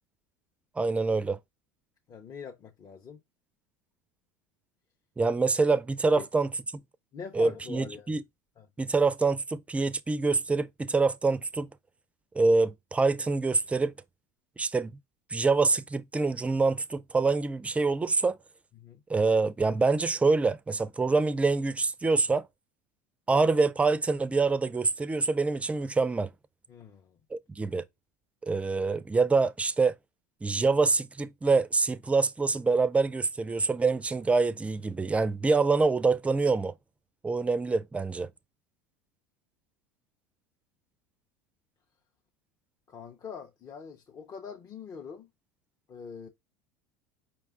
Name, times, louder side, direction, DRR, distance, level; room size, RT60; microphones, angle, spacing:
voice 1, 0.8-1.4 5.2-6.5 7.3-8.2 8.8-11.7 12.3-13.9 14.6-14.9 15.3-18.4 19.1-22.4 23.3-26.3 27.3-27.8 28.4-29.9 30.4-36.7 37.2-38.3, right 3 dB, 15° right, 0.4 m, -25 dB
voice 2, 2.1-3.2 6.1-6.3 7.1-8.1 8.6-8.7 18.8-19.0 26.7-27.2 42.9-45.3 45.9-46.3, left 6 dB, 35° left, 0.6 m, -43 dB
5.0 x 2.3 x 3.6 m
supercardioid pair, 100°, 10 cm